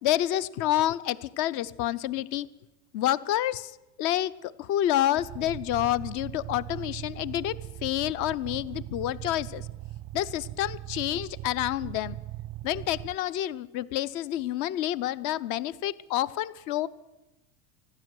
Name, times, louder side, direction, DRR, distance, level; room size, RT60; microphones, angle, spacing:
voice 1, 0.0-2.5 2.9-3.7 4.0-7.6 7.8-9.7 10.1-12.2 12.6-16.9, left 13 dB, 40° left, 19 dB, 0.6 m, -28 dB
sound 1, 5.2-13.2, right 15 dB, 30° right, 0.5 m, -40 dB
15.0 x 12.0 x 7.8 m, 1.0 s
supercardioid pair, 130°, 47 cm